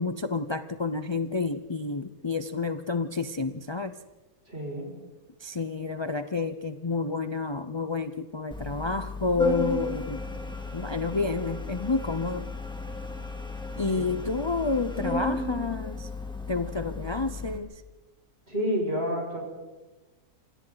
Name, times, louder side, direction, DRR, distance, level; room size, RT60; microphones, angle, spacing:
voice 1, 0.0-4.0 5.4-10.2 10.7-12.5 13.8-16.1 16.5-17.8, left 3 dB, 45° left, 10 dB, 0.3 m, -30 dB
voice 2, 4.5-4.9 13.9-14.2 18.5-19.4, equal, 40° right, -1 dB, 6.6 m, -30 dB
Organ, 8.5-17.6, left 2 dB, 5° left, 2.1 m, -34 dB
27.5 x 26.0 x 4.0 m, 1.1 s
omnidirectional pair, 1.7 m